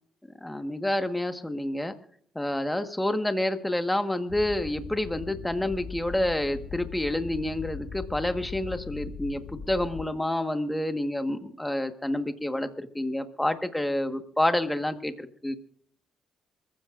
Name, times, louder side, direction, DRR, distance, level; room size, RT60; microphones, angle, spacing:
voice 1, 0.4-1.9 2.3-9.4 9.7-15.6, left 1 dB, 10° left, 8 dB, 1.5 m, -28 dB
sound 1, 4.3-10.1, left 6 dB, 50° left, 1.3 m, -40 dB
27.0 x 15.5 x 2.5 m, 0.62 s
cardioid pair, 90°, 0 cm